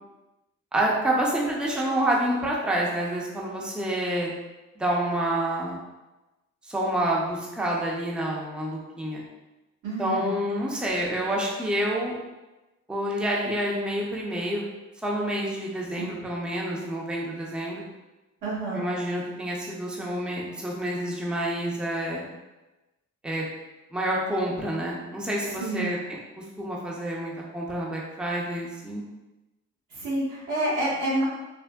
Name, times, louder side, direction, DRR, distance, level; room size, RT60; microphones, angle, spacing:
voice 1, 0.7-4.3 4.8-5.8 6.6-9.2 10.0-12.2 12.9-14.6 15.0-17.8 18.7-22.2 23.2-23.4 23.9-26.0 26.4-29.0, right 1 dB, 5° right, -3 dB, 0.5 m, -28 dB
voice 2, 9.8-10.3 16.0-16.1 18.4-18.8 25.6-25.9 29.9-31.2, right 1 dB, 90° right, -7 dB, 1.2 m, -28 dB
3.4 x 2.0 x 2.2 m, 1.1 s
cardioid pair, 90°, 30 cm